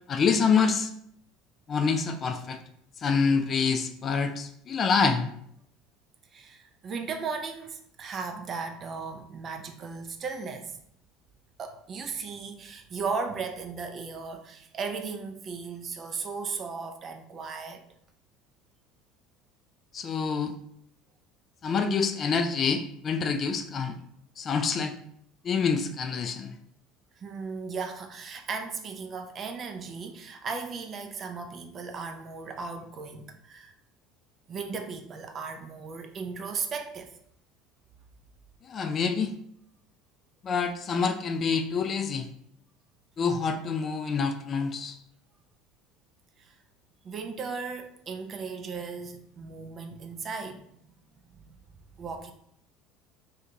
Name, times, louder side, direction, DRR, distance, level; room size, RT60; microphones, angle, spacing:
voice 1, 0.1-0.9 1.7-2.6 3.0-5.3 19.9-20.6 21.6-23.9 24.4-25.0 25.4-26.6 38.6-39.3 40.4-42.3 43.2-45.0, left 5 dB, 35° left, 0.3 m, -26 dB
voice 2, 6.3-10.8 11.6-17.8 27.2-33.7 34.5-37.1 46.4-46.5 47.0-50.7 51.4-51.6 52.0-52.3, right 5 dB, 35° right, 0.4 m, -36 dB
2.7 x 2.7 x 3.4 m
figure-of-eight pair, 65°, 0 cm